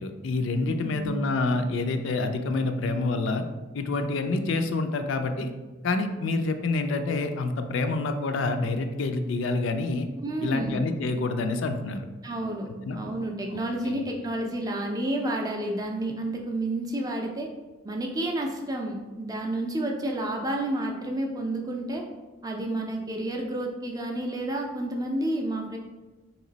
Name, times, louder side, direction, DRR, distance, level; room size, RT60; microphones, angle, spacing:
voice 1, 0.0-3.4 3.7-5.5 5.8-10.1 10.4-12.1 12.9-13.0 13.9-14.0, left 3 dB, 70° left, 7 dB, 0.3 m, -27 dB
voice 2, 0.6-1.3 10.2-10.8 12.2-17.5 17.8-22.0 22.4-25.8, right 1 dB, 20° right, 1 dB, 0.4 m, -30 dB
3.3 x 3.0 x 3.9 m, 1.2 s
head